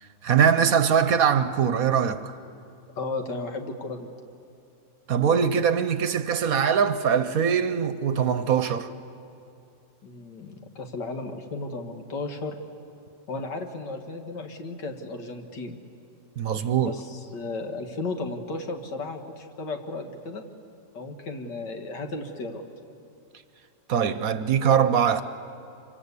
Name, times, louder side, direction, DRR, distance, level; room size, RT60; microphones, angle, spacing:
voice 1, 0.2-2.3 5.1-8.9 16.4-17.0 23.9-25.2, right 7 dB, 60° right, 1.2 m, -22 dB
voice 2, 3.0-4.1 10.0-12.6 13.3-15.8 16.8-20.4 20.9-22.6, left 3 dB, 80° left, 2.4 m, -34 dB
26.0 x 24.5 x 8.4 m
omnidirectional pair, 1.8 m